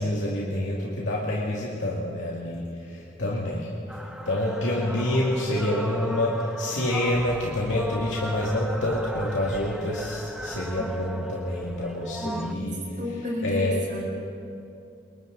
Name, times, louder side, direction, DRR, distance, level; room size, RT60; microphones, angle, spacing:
voice 1, 0.0-3.7 4.2-12.8 13.4-13.8, left 1 dB, 85° left, -5 dB, 2.4 m, -27 dB
sound 1, 3.9-12.5, equal, 5° right, 0.7 m, -38 dB
voice 2, 12.2-12.5 13.0-14.1, left 1 dB, 45° right, -3 dB, 5.7 m, -32 dB
28.0 x 23.0 x 4.0 m, 2.6 s
head